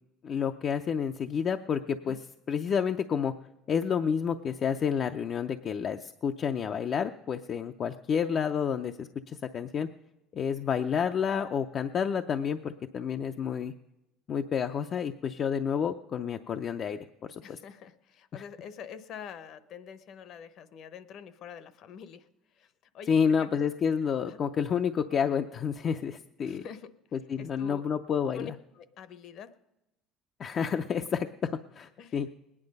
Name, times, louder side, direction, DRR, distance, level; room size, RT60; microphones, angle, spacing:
voice 1, 0.2-3.3 3.7-9.9 10.3-13.7 14.3-17.6 18.3-18.4 23.1-26.6 27.1-28.5 30.4-32.3, left 7 dB, 40° left, 6 dB, 0.5 m, -30 dB
voice 2, 17.4-22.3 22.6-23.7 24.3-24.4 26.4-26.9 27.4-27.8 28.3-29.5 32.0-32.2, left 7 dB, 55° left, 13 dB, 0.9 m, -45 dB
20.0 x 9.8 x 5.3 m, 0.94 s
cardioid pair, 135°, 0 cm